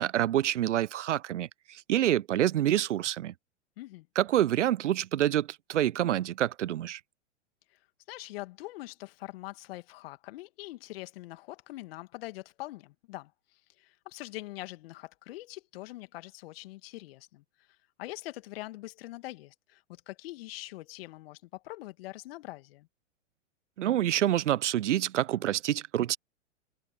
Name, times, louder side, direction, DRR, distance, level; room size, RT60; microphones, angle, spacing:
voice 1, 0.0-3.3 4.2-7.0 23.8-26.2, right 12 dB, 75° right, 0.6 m, -27 dB
voice 2, 8.1-22.9, left 18 dB, 55° left, 2.2 m, -43 dB
figure-of-eight pair, 105°, 36 cm